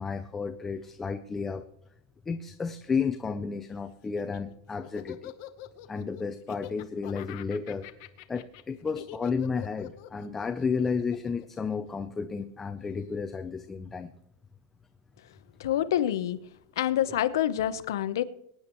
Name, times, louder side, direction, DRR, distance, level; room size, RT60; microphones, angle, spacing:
voice 1, 0.0-1.7 2.3-5.3 5.9-7.9 8.3-14.1, left 5 dB, 10° left, 0.5 m, -32 dB
Laughter, 4.0-12.4, left 13 dB, 45° left, 0.9 m, -45 dB
voice 2, 15.6-16.4 16.8-18.2, left 11 dB, 80° left, 0.8 m, -27 dB
23.0 x 10.0 x 3.0 m
supercardioid pair, 170°, 2 cm